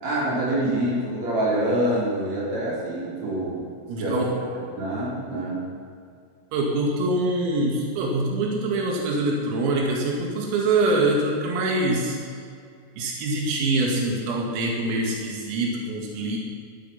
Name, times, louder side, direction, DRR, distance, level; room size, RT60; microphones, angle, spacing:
voice 1, 0.0-3.6 4.0-4.2 4.8-5.7, right 1 dB, 35° right, -7 dB, 5.8 m, -26 dB
voice 2, 3.9-4.3 4.6-4.7 6.5-12.2 13.0-16.4, right 2 dB, 85° right, -1 dB, 4.7 m, -24 dB
20.0 x 12.0 x 5.8 m, 2.3 s
omnidirectional pair, 5.9 m